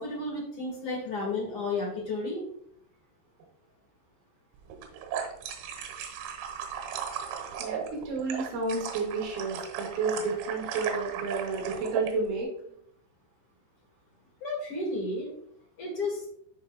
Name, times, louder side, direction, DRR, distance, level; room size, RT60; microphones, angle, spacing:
voice 1, 0.0-2.4 14.4-15.3 15.8-16.3, left 2 dB, 75° left, -2 dB, 1.3 m, -32 dB
sound 1, 4.7-12.1, right 7 dB, 85° right, 3.9 m, -36 dB
voice 2, 7.6-12.5, right 4 dB, 70° right, -2 dB, 4.8 m, -31 dB
13.5 x 5.6 x 2.3 m, 0.69 s
omnidirectional pair, 6.0 m